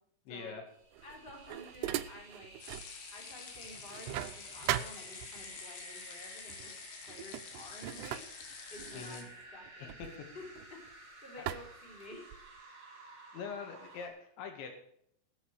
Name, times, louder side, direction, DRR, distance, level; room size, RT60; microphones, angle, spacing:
voice 1, 0.3-0.6 8.9-9.2 11.4-11.5 13.3-14.7, left 6 dB, 85° left, 4 dB, 4.2 m, -43 dB
sound 1, 0.7-14.1, right 2 dB, 30° right, 2.8 m, -54 dB
sound 2, 0.9-2.9 3.3-5.6 6.5-6.7 7.1-10.9 11.5-12.6, right 13 dB, 80° right, 2.5 m, -40 dB
voice 2, 1.0-2.5 3.1-6.7 7.1-8.3 8.7-10.1 10.3-12.3, left 1 dB, 15° left, -1 dB, 3.1 m, -51 dB
sound 3, 2.6-9.2, left 6 dB, 70° left, 3.6 m, -48 dB
19.0 x 8.0 x 4.9 m, 0.69 s
omnidirectional pair, 5.1 m